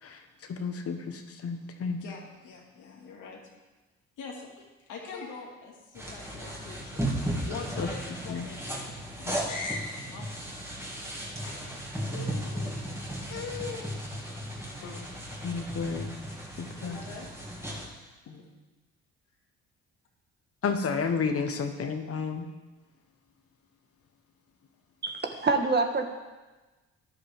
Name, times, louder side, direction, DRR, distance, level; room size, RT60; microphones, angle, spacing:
voice 1, 0.0-2.0 7.8-7.9 8.3-8.5 15.4-16.1 16.6-17.0 20.6-22.4, left 5 dB, 50° left, 6 dB, 1.3 m, -31 dB
voice 2, 2.0-3.4 4.2-4.5 4.9-7.0 7.5-8.9 9.2-10.5 11.1-13.9 14.8-15.4 16.8-17.3 17.6-17.8 18.3-18.4 20.6-20.7 21.3-21.4, left 4 dB, 80° left, -1 dB, 2.4 m, -42 dB
sound 1, 5.9-17.9, right 1 dB, 10° right, 2.7 m, -36 dB
voice 3, 25.0-26.0, right 3 dB, 35° right, 4 dB, 1.5 m, -26 dB
13.0 x 11.0 x 3.7 m, 1.2 s
cardioid pair, 90°, 30 cm